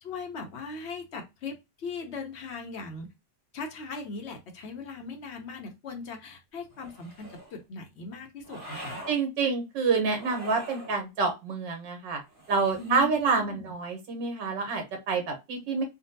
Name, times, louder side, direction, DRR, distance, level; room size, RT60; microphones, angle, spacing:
voice 1, 0.0-3.1 3.5-9.0 12.8-13.7, left 4 dB, 60° left, 4 dB, 0.7 m, -39 dB
sliding glass on wood, 6.7-7.6 8.4-9.2 10.1-11.0 12.3-13.1, right 1 dB, 25° right, 1.3 m, -44 dB
voice 2, 9.1-12.2 12.5-15.8, right 4 dB, 75° right, 4 dB, 1.7 m, -27 dB
3.7 x 2.2 x 2.7 m, 0.23 s
omnidirectional pair, 2.0 m